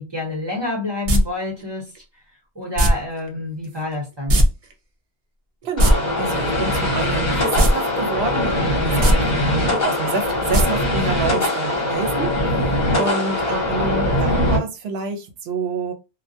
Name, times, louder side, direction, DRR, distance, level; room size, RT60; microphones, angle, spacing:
voice 1, 0.0-1.9 2.5-4.4, left 2 dB, 25° right, 0.8 m, -28 dB
sound 1, 1.1-1.2 2.8-2.9 4.3-4.5 4.7-4.8 5.6-5.9 7.5-7.7 8.1-8.2 8.9-9.1 10.5-10.6 11.0-11.1, right 1 dB, 50° right, 0.4 m, -15 dB
voice 2, 5.6-12.3 12.9-15.9, right 4 dB, 70° right, 0.8 m, -28 dB
sound 2, 5.8-14.6, left 1 dB, 45° left, 1.0 m, -21 dB
2.2 x 2.2 x 2.7 m
omnidirectional pair, 1.2 m